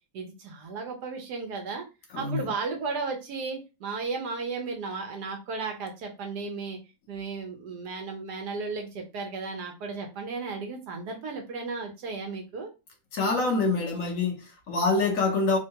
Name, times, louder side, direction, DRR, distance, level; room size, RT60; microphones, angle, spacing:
voice 1, 0.1-1.9 2.2-6.8 7.1-12.7, right 4 dB, 80° right, 1.4 m, -34 dB
voice 2, 2.1-2.4 13.1-15.6, left 3 dB, 60° left, 1.1 m, -26 dB
3.6 x 2.2 x 2.8 m
omnidirectional pair, 1.7 m